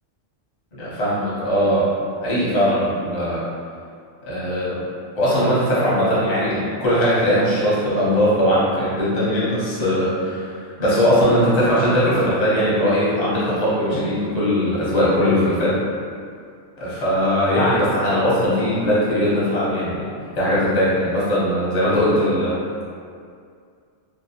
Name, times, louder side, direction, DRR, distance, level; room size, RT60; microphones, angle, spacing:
voice 1, 0.7-1.9 2.2-3.4 4.2-4.8 5.2-15.7 16.8-20.1 20.4-22.8, equal, 40° left, -9 dB, 0.8 m, -20 dB
2.3 x 2.0 x 2.8 m, 2.3 s
omnidirectional pair, 1.3 m